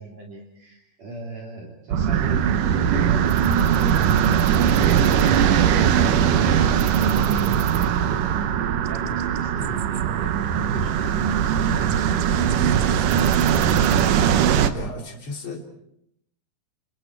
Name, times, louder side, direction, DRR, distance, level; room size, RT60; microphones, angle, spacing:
voice 1, 0.0-8.6 8.9-13.8, right 2 dB, 50° right, -1 dB, 4.0 m, -38 dB
sound 1, 1.9-14.7, right 8 dB, 70° right, 2.5 m, -20 dB
voice 2, 14.7-15.7, left 3 dB, 35° left, 1 dB, 4.0 m, -34 dB
30.0 x 28.0 x 4.7 m, 0.73 s
omnidirectional pair, 4.0 m